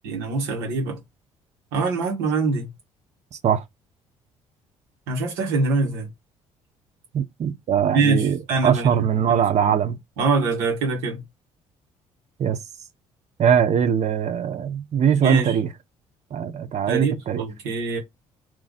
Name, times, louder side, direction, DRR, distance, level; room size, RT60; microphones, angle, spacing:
voice 1, 0.0-1.0 1.7-2.7 5.1-6.1 7.9-8.9 9.3-9.7 10.2-11.2 15.2-15.6 16.9-18.0, right 3 dB, 70° right, 1.8 m, -24 dB
voice 2, 7.1-10.0 12.4-12.6 13.4-15.7 16.3-17.4, right 8 dB, 45° right, 0.9 m, -21 dB
3.5 x 3.1 x 4.0 m
figure-of-eight pair, 50°, 17 cm